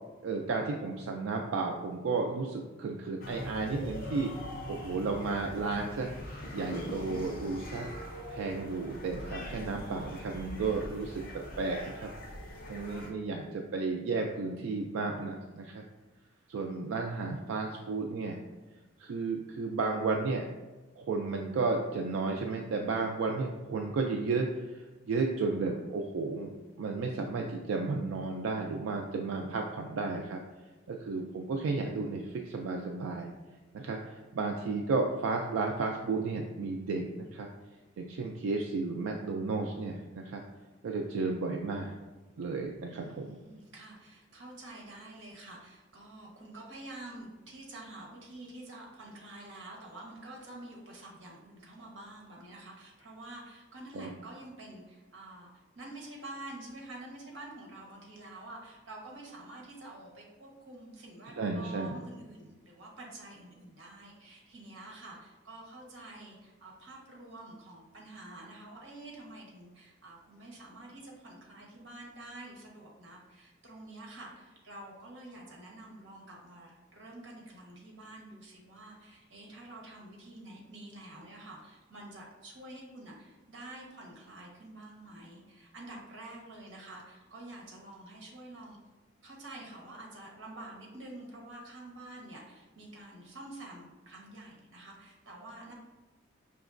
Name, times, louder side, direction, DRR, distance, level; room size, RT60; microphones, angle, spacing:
voice 1, 0.2-4.3 4.7-6.1 6.5-7.9 8.3-11.2 11.6-12.1 12.7-15.8 16.5-18.4 19.0-20.4 21.0-24.5 24.7-30.4 30.9-33.3 33.7-37.5 38.0-40.4 40.8-41.9 42.4-43.4 53.9-54.1 61.4-61.9, right 3 dB, 85° right, 1 dB, 0.3 m, -33 dB
sound 1, 3.2-13.1, left 1 dB, 45° left, 0.6 m, -42 dB
voice 2, 42.9-88.8 89.2-95.7, right 2 dB, 60° right, -2 dB, 1.0 m, -48 dB
5.1 x 2.9 x 2.5 m, 1.2 s
head